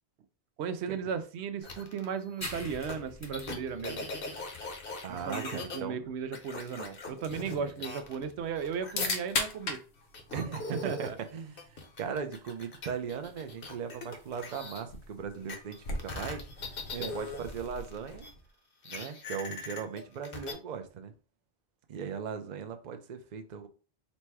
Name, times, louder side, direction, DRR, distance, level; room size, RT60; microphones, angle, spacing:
voice 1, 0.6-4.1 5.1-9.8 10.7-11.2 16.9-17.1, right 6 dB, 90° right, 9 dB, 0.9 m, -36 dB
sound 1, 1.6-2.0 2.9-3.0 3.3-5.8 6.3-8.3 8.6-9.7 10.1-14.8 15.5-18.3 18.8-20.5, left 3 dB, 60° left, 1.0 m, -41 dB
sound 2, 2.4-9.5, left 2 dB, 20° left, 0.6 m, -47 dB
voice 2, 5.0-6.0 7.6-7.9 10.3-16.8 17.1-18.3 18.9-21.1 21.9-23.7, right 7 dB, 50° right, 7 dB, 0.6 m, -38 dB
sound 3, 6.5-18.5, left 3 dB, 90° left, 1.2 m, -41 dB
4.1 x 2.2 x 4.6 m, 0.37 s
omnidirectional pair, 1.1 m